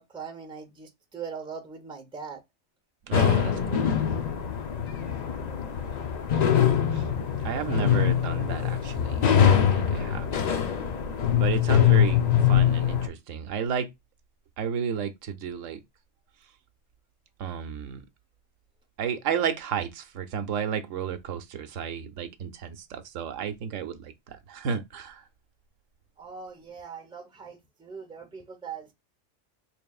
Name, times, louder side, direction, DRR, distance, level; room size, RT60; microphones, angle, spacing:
voice 1, 0.0-2.4 26.2-28.9, right 6 dB, 5° right, 0.6 m, -41 dB
sound 1, 3.1-13.1, left 9 dB, 55° left, 0.4 m, -23 dB
voice 2, 3.1-3.9 6.9-7.1 7.4-10.3 11.4-12.2 12.5-13.9 14.6-15.8 17.4-18.0 19.0-25.2, right 7 dB, 85° right, 1.0 m, -32 dB
4.1 x 3.2 x 2.3 m
omnidirectional pair, 1.3 m